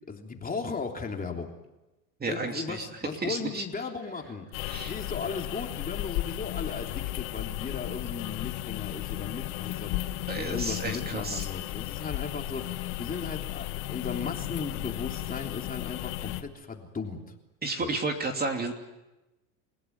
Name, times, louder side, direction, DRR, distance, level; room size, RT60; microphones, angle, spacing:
voice 1, 0.1-1.5 2.3-4.5 4.9-17.2 17.8-18.0, left 5 dB, 20° left, 2 dB, 3.3 m, -36 dB
voice 2, 2.2-2.9 3.2-3.6 4.7-4.9 10.3-11.5 17.6-18.7, right 3 dB, 20° right, 4 dB, 2.9 m, -32 dB
sound 1, 4.5-16.4, left 16 dB, 65° left, 1.7 m, -34 dB
29.5 x 16.5 x 9.7 m, 1.0 s
supercardioid pair, 120°, 45 cm